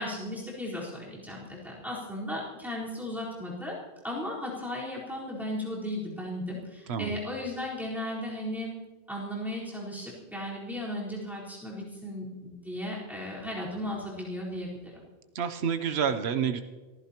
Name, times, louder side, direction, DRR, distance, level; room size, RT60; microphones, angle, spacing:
voice 1, 0.0-3.8 4.0-8.7 9.1-15.0, left 1 dB, ahead, -7 dB, 4.2 m, -36 dB
voice 2, 6.9-7.2 15.3-16.6, right 7 dB, 85° right, 8 dB, 1.0 m, -28 dB
26.0 x 15.0 x 3.0 m, 1.3 s
omnidirectional pair, 1.1 m